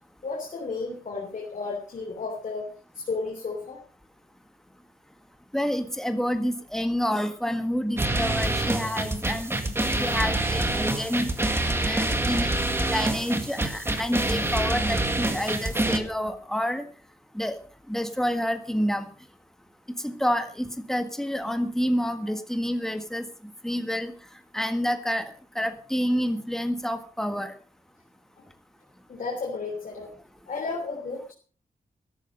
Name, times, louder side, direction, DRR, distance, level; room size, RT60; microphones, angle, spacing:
voice 1, 0.2-3.8 29.1-30.1 30.5-31.3, left 4 dB, 55° left, -1 dB, 3.4 m, -33 dB
voice 2, 5.5-9.5 10.0-11.3 11.8-12.5 12.9-16.9 17.3-17.6 17.9-19.1 20.0-23.3 23.6-24.1 24.5-27.5, equal, 5° left, 8 dB, 1.7 m, -28 dB
sound 1, 8.0-16.0, right 2 dB, 15° right, 1.8 m, -26 dB
13.5 x 13.5 x 5.2 m, 0.40 s
wide cardioid pair, 165°, 15 cm